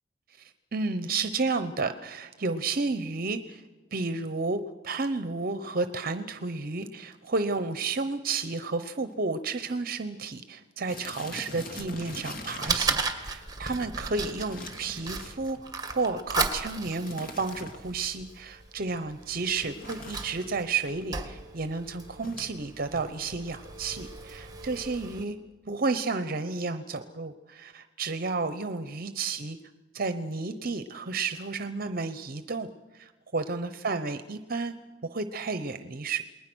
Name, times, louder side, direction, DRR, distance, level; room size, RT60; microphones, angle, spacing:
voice 1, 0.3-3.6 3.9-25.4 25.7-29.6 29.9-32.7 32.9-34.7 35.1-36.2, right 3 dB, 50° right, 11 dB, 0.9 m, -32 dB
sound 1, 5.5-5.8 6.5-6.6 6.8-6.9 7.1-7.4 7.8-7.9 8.2-8.3 9.1-9.2 9.4-9.6 9.9-10.0 10.9-13.1 14.5-15.7 17.0-18.1 19.6-20.7 22.2-22.5, left 2 dB, 50° left, 2.7 m, -43 dB
Fire, 11.8-25.2, right 4 dB, 20° right, 2.0 m, -36 dB
28.5 x 20.5 x 6.2 m, 1.3 s
head